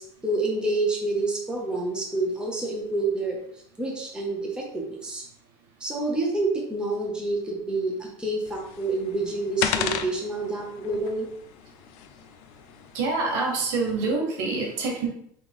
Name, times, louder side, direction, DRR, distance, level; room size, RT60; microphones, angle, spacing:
voice 1, 0.0-3.4 3.8-5.2 5.8-11.3, right 2 dB, 5° right, -2 dB, 1.0 m, -28 dB
sound 1, 8.5-14.0, left 9 dB, 70° left, 0.4 m, -35 dB
voice 2, 12.9-15.1, right 3 dB, 75° right, 0 dB, 1.3 m, -26 dB
3.3 x 3.3 x 3.5 m, 0.68 s
supercardioid pair, 115°, 11 cm